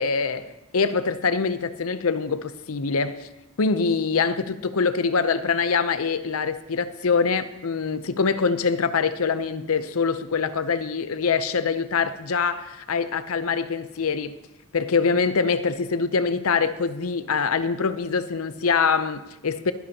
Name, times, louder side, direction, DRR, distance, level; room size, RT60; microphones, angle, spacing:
voice 1, 0.0-3.3 3.6-14.4 14.7-19.7, left 5 dB, 85° left, 0.7 m, -24 dB
23.0 x 10.5 x 2.9 m
head